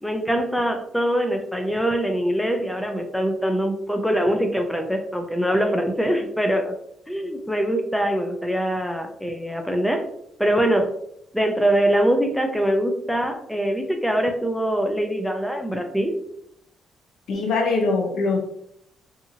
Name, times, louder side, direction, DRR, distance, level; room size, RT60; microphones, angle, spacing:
voice 1, 0.0-6.7 7.1-10.0 10.4-10.9 11.3-16.1, right 1 dB, ahead, 4 dB, 0.4 m, -23 dB
voice 2, 17.3-18.4, left 3 dB, 70° left, 2 dB, 0.7 m, -22 dB
2.6 x 2.6 x 2.6 m, 0.71 s
cardioid pair, 90°, 0 cm